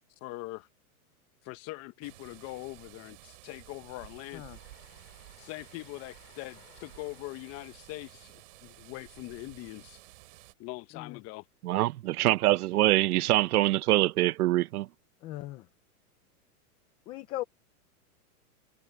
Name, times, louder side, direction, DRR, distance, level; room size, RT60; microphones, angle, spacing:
voice 1, 0.2-0.7 1.4-4.4 5.4-10.0 10.6-11.4, left 20 dB, 35° left, 1.2 m, -42 dB
sound 1, 2.0-10.5, right 21 dB, 55° right, 3.0 m, -53 dB
Train, 4.5-10.7, left 12 dB, 75° left, 4.9 m, -62 dB
voice 2, 11.6-14.9, right 16 dB, 75° right, 0.7 m, -24 dB
voice 3, 15.2-15.7 17.1-17.4, left 15 dB, 15° left, 0.3 m, -38 dB
hypercardioid pair, 140°, 45 cm